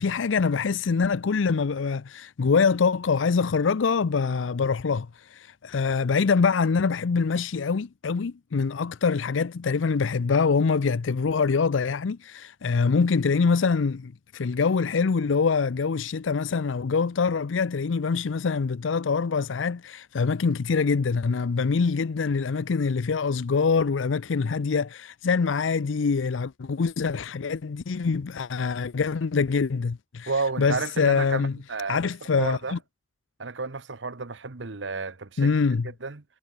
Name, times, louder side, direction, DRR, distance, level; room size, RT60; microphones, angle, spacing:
voice 1, 0.0-30.3 30.6-31.5 31.9-32.8 35.4-35.9, left 5 dB, 85° left, 0.5 m, -24 dB
voice 2, 30.3-31.4 31.7-32.1 32.4-32.8 33.4-35.5 36.0-36.2, right 4 dB, 75° right, 1.1 m, -31 dB
head